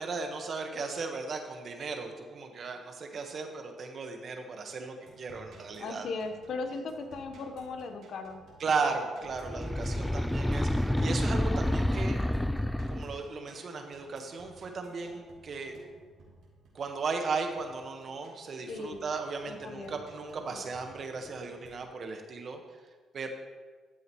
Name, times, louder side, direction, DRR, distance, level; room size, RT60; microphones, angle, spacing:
voice 1, 0.0-6.1 8.6-12.2 12.9-15.8 16.7-22.6 23.1-23.3, right 4 dB, 50° right, 4 dB, 1.3 m, -36 dB
sound 1, 5.0-21.7, right 2 dB, 75° right, 2.9 m, -56 dB
voice 2, 5.8-8.4 18.7-19.0 19.5-20.0 20.5-20.6, left 3 dB, 65° left, 6 dB, 1.1 m, -37 dB
sound 2, 9.4-13.3, left 1 dB, 5° left, 0.3 m, -29 dB
14.0 x 7.8 x 3.1 m, 1.4 s
cardioid pair, 90°, 0 cm